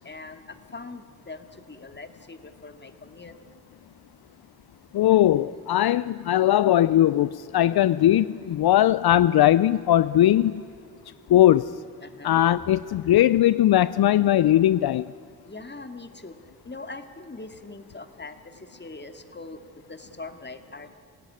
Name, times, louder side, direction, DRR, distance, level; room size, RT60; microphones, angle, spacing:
voice 1, 0.0-3.3 12.0-12.4 15.4-16.3 16.6-19.6 19.9-21.0, left 3 dB, 25° left, 2.2 m, -42 dB
voice 2, 4.9-10.6 11.3-11.7 12.2-15.1, left 12 dB, 70° left, 0.5 m, -19 dB
26.5 x 16.5 x 9.7 m
cardioid pair, 50°, 38 cm